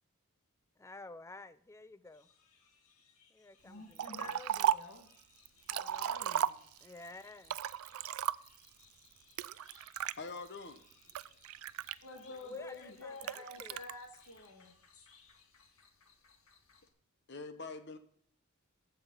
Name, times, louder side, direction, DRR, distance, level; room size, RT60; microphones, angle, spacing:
voice 1, 0.8-2.3 3.3-4.4 6.8-7.6 12.4-13.8, left 2 dB, 10° left, 13 dB, 0.3 m, -51 dB
voice 2, 2.1-10.2 10.8-15.8, left 3 dB, 90° left, 2 dB, 1.8 m, -53 dB
Liquid, 4.0-5.0 5.5-7.0 7.4-8.7 9.4-10.2 10.8-12.4 13.2-13.9, right 10 dB, 75° right, 0.3 m, -35 dB
sound 1, 5.3-16.9, left 5 dB, 70° left, 1.6 m, -67 dB
voice 3, 10.2-10.8 12.2-13.1 17.3-18.0, left 3 dB, 50° left, 9 dB, 1.1 m, -45 dB
15.0 x 5.6 x 3.9 m, 0.64 s
head